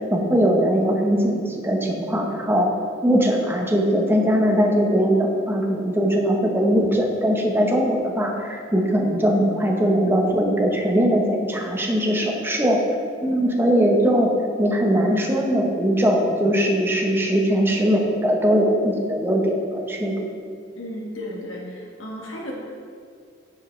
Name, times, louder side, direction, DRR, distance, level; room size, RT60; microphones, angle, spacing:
voice 1, 0.1-2.7 3.0-12.8 13.2-14.3 14.6-20.3, equal, 10° right, 1 dB, 0.8 m, -20 dB
voice 2, 20.7-22.5, equal, 80° left, -2 dB, 1.3 m, -34 dB
9.3 x 7.2 x 3.1 m, 2.2 s
head